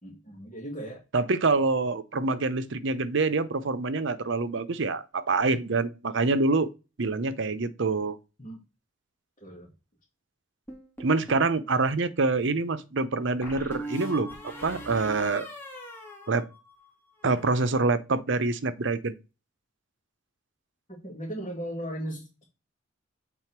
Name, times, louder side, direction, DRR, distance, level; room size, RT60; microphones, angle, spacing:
voice 1, 0.0-1.0 8.4-8.6 9.4-9.7 20.9-22.5, equal, 30° left, 2.3 m, -37 dB
voice 2, 1.1-6.7 7.0-8.2 11.0-15.5 16.3-16.5 17.2-19.1, right 3 dB, 70° right, 0.7 m, -26 dB
sound 1, 10.7-11.5 13.4-16.9 17.2-17.7, right 1 dB, 10° left, 2.0 m, -41 dB
7.7 x 3.7 x 4.5 m
head